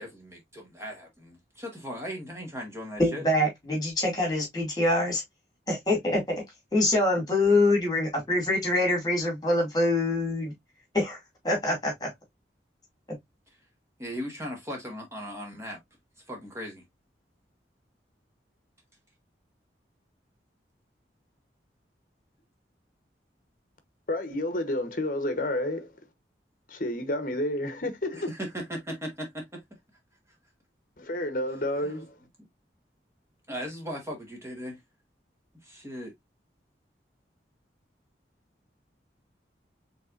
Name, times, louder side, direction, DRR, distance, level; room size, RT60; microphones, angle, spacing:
voice 1, 0.0-3.2 14.0-15.8 16.3-16.8 28.1-29.6 31.8-32.0 33.5-34.8 35.6-36.1, equal, 15° right, 1.4 m, -38 dB
voice 2, 3.0-5.2 5.7-6.4 6.7-10.5 10.9-11.2 11.4-12.1, left 2 dB, 20° left, 2.4 m, -25 dB
voice 3, 24.1-25.9 26.7-28.3 31.0-32.2, left 1 dB, 50° left, 0.9 m, -30 dB
5.3 x 3.4 x 2.5 m
head